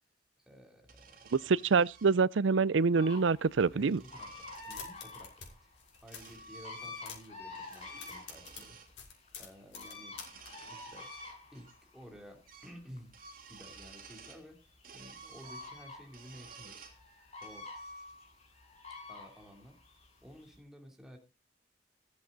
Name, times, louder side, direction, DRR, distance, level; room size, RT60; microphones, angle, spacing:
voice 1, 0.4-1.7 3.7-10.2 10.5-11.1 11.5-13.1 13.5-16.9 17.4-17.7 19.1-19.8 20.2-21.2, equal, 5° right, 3.2 m, -53 dB
sound 1, 0.8-2.2 3.4-4.7 5.6-7.2 7.5-8.9 10.1-11.8 12.0-12.1 12.5-12.8 13.1-14.5 14.8-17.0 17.4-18.4, right 3 dB, 50° right, 3.4 m, -52 dB
voice 2, 1.5-4.0, right 4 dB, 85° right, 0.5 m, -26 dB
sound 2, 2.9-20.6, left 3 dB, 35° left, 6.6 m, -50 dB
sound 3, 4.5-5.5 5.7-6.4 6.8-7.4 7.7-10.5, left 7 dB, 75° left, 6.1 m, -48 dB
15.0 x 11.0 x 4.0 m
head